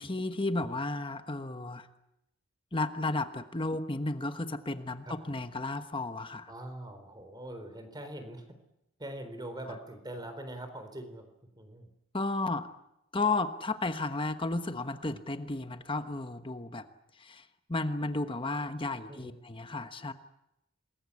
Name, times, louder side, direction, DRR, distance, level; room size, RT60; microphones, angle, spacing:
voice 1, 0.0-1.9 2.7-6.5 12.1-12.7 13.1-16.9 17.2-20.1, left 2 dB, 25° left, 9 dB, 1.2 m, -33 dB
voice 2, 6.5-8.5 9.0-11.9 19.1-19.3, right 1 dB, 20° right, 8 dB, 4.0 m, -43 dB
27.5 x 21.5 x 8.5 m, 0.88 s
head